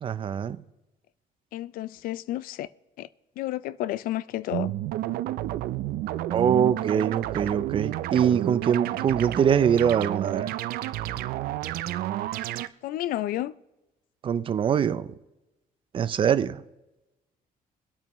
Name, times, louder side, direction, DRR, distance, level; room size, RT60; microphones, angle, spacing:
voice 1, 0.0-0.6 6.3-10.5 14.2-15.1 15.9-16.6, right 8 dB, 35° right, 0.5 m, -23 dB
voice 2, 1.5-2.7 3.0-3.1 3.4-4.7 12.8-13.5, left 14 dB, 75° left, 0.4 m, -31 dB
sound 1, 4.5-12.7, right 14 dB, 85° right, 0.5 m, -30 dB
24.5 x 8.8 x 3.1 m
cardioid pair, 160°, 15 cm